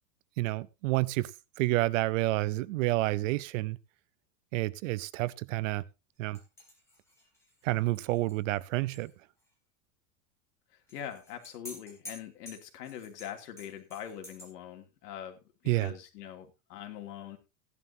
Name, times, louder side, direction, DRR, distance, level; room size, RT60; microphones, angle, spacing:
voice 1, 0.4-1.3 1.6-3.8 4.5-5.8 6.2-6.4 7.6-9.1 15.7-15.9, right 19 dB, 55° right, 0.7 m, -29 dB
sound 1, 6.3-9.1 9.4-9.5 10.9-14.5, left 1 dB, 5° left, 3.8 m, -51 dB
voice 2, 10.7-17.4, left 10 dB, 85° left, 3.0 m, -43 dB
16.0 x 11.0 x 2.8 m
supercardioid pair, 175°, 46 cm